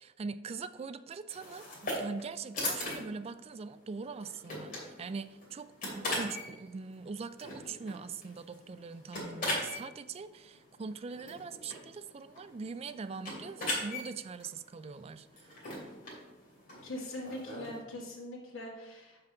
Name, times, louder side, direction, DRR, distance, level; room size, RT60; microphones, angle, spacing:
voice 1, 0.0-15.5, right 4 dB, 30° right, 13 dB, 0.3 m, -42 dB
sound 1, 1.3-17.8, left 1 dB, 45° left, 2.7 m, -40 dB
voice 2, 16.8-19.2, left 1 dB, 75° left, -5 dB, 1.8 m, -42 dB
5.9 x 5.0 x 6.6 m, 1.1 s
head